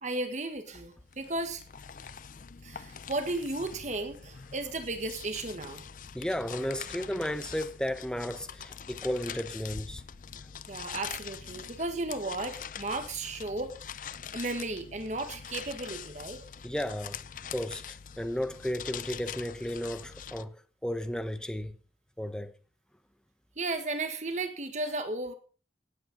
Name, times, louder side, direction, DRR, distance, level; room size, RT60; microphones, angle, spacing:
voice 1, 0.0-1.6 2.6-5.8 10.7-13.7 14.3-16.5 23.6-25.3, right 2 dB, 40° right, 1.6 m, -34 dB
sound 1, 0.7-20.5, left 8 dB, 45° left, 0.6 m, -44 dB
voice 2, 6.1-10.0 16.6-17.2 17.5-20.6 20.8-21.8 22.2-22.5, equal, 5° left, 1.0 m, -34 dB
16.5 x 9.1 x 5.3 m
head